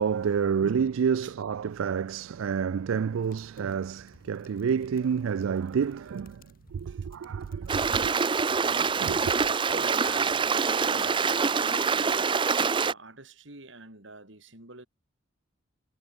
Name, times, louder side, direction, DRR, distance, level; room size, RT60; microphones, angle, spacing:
voice 1, 0.0-6.4 6.7-8.1 9.0-9.4, right 6 dB, 80° right, 0.4 m, -29 dB
sound 1, 3.1-11.1, left 1 dB, 45° left, 5.5 m, -59 dB
Stream, 7.7-12.9, right 5 dB, 25° right, 0.5 m, -25 dB
voice 2, 9.7-12.3 12.7-14.9, right 3 dB, 65° right, 3.9 m, -47 dB
head